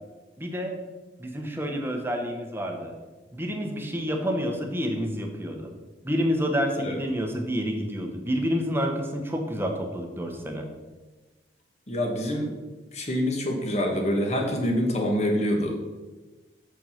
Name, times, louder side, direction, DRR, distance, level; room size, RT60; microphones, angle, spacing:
voice 1, 0.4-0.7 1.2-2.9 3.3-5.7 6.0-10.7, equal, 15° right, 3 dB, 1.0 m, -28 dB
voice 2, 11.9-12.5 12.9-15.8, equal, 40° left, 1 dB, 1.4 m, -26 dB
7.0 x 5.4 x 5.7 m, 1.2 s
head